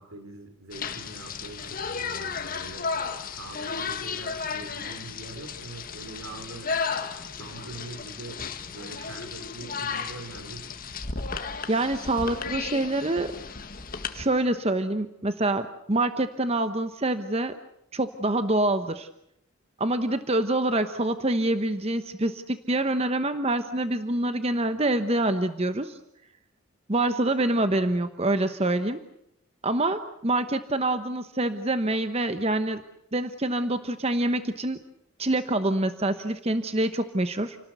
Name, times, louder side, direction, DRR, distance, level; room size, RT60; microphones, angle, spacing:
voice 1, 0.0-2.9 3.3-6.7 7.4-10.7, right 2 dB, 80° right, 6 dB, 5.2 m, -43 dB
sound 1, 0.7-14.3, left 5 dB, 40° left, 1.7 m, -34 dB
voice 2, 11.7-13.3 14.1-17.5 17.9-19.1 19.8-26.0 26.9-29.0 29.6-32.8 33.1-34.8 35.2-37.6, right 2 dB, 30° right, 9 dB, 1.0 m, -26 dB
30.0 x 19.0 x 8.1 m, 0.77 s
head